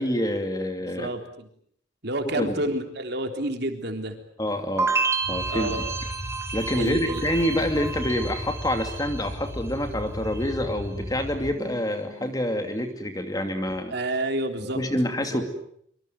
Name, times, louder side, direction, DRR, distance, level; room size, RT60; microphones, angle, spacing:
voice 1, 0.0-1.1 2.3-2.6 4.4-4.9 5.3-5.8 6.5-13.9 14.7-15.5, left 1 dB, 20° left, 6 dB, 2.6 m, -27 dB
voice 2, 1.0-1.5 2.0-4.2 5.5-5.8 6.8-7.2 13.9-14.8 15.2-15.4, right 1 dB, 55° right, 5 dB, 3.5 m, -29 dB
sound 1, 4.8-9.8 10.1-10.8, right 4 dB, 15° right, 3.1 m, -30 dB
sound 2, 5.2-11.5, left 1 dB, 40° left, 3.9 m, -36 dB
25.0 x 25.0 x 7.8 m, 0.68 s
head